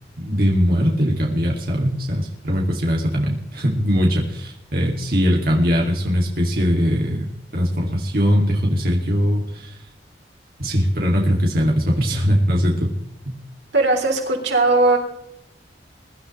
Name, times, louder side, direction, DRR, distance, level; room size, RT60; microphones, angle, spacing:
voice 1, 0.2-7.3 7.5-9.8 10.6-12.9 13.3-13.4, equal, 55° right, -1 dB, 2.5 m, -20 dB
voice 2, 13.7-15.0, right 2 dB, 90° right, 1 dB, 3.6 m, -18 dB
23.0 x 12.0 x 3.3 m, 0.80 s
head